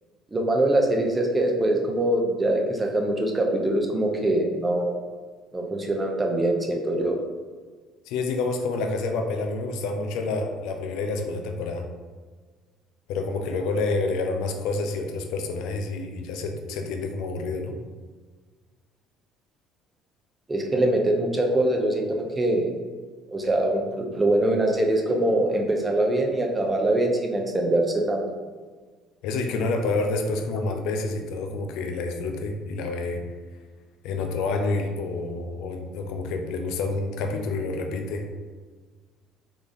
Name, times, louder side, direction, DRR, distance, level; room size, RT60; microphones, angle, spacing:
voice 1, 0.3-4.9 5.5-7.2 20.5-22.0 22.4-22.7 23.3-28.2, right 1 dB, 20° right, 0 dB, 0.7 m, -23 dB
voice 2, 8.1-11.8 13.1-17.8 29.2-33.2 34.0-38.2, left 3 dB, 60° left, 4 dB, 0.4 m, -28 dB
3.5 x 3.5 x 2.6 m, 1.5 s
figure-of-eight pair, 55°, 0 cm